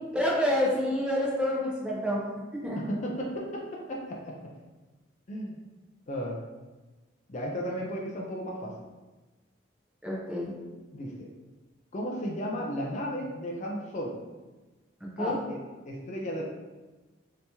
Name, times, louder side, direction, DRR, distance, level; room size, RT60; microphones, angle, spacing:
voice 1, 0.1-2.2 2.6-2.8 10.0-10.5 15.2-15.4, left 1 dB, 5° right, -5 dB, 0.6 m, -27 dB
voice 2, 2.7-3.6 3.9-4.5 5.3-5.6 6.1-6.4 7.3-8.7 10.9-11.3 11.9-14.2 15.2-15.6 15.9-16.4, equal, 35° left, -2 dB, 0.4 m, -34 dB
2.8 x 2.8 x 3.4 m, 1.2 s
head